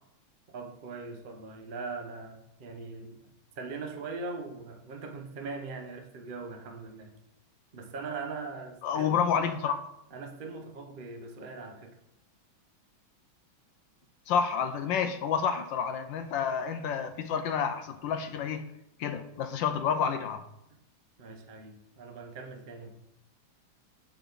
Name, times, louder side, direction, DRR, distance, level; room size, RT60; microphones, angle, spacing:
voice 1, 0.5-7.1 7.7-9.2 10.1-12.0 20.7-20.8 21.2-22.9, right 4 dB, 40° right, 0.7 m, -41 dB
voice 2, 8.8-9.8 14.3-18.7 19.0-20.4, left 7 dB, 75° left, 1.3 m, -29 dB
7.4 x 6.9 x 4.0 m
omnidirectional pair, 2.2 m